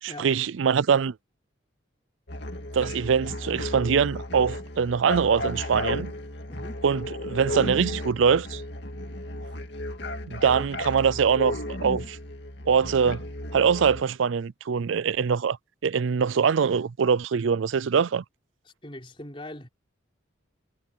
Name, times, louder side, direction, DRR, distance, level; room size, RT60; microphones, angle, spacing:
voice 1, 0.0-1.2 2.7-6.1 6.8-8.6 10.3-12.2 12.7-13.2 13.5-15.6 15.8-18.2, right 6 dB, 75° right, 0.4 m, -23 dB
sound 1, 2.3-14.0, left 1 dB, 60° left, 2.3 m, -34 dB
voice 2, 6.5-6.9 18.6-19.7, left 1 dB, 25° left, 4.4 m, -41 dB
head